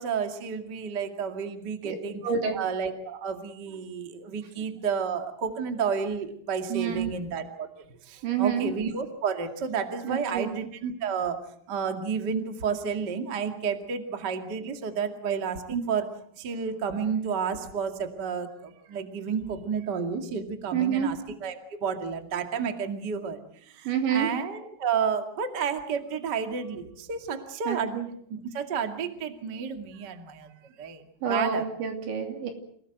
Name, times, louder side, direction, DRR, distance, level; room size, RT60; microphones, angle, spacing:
voice 1, 0.0-2.2 2.5-11.4 11.7-16.1 16.4-28.0 28.3-30.5 30.8-31.0 31.3-31.6, right 6 dB, 35° right, 6 dB, 1.8 m, -31 dB
voice 2, 2.2-2.6 6.7-7.1 8.2-8.7 10.0-10.5 20.7-21.1 23.8-24.3 27.7-28.1 31.2-32.5, right 7 dB, 75° right, 5 dB, 5.3 m, -27 dB
28.0 x 18.0 x 7.9 m, 0.66 s
omnidirectional pair, 5.2 m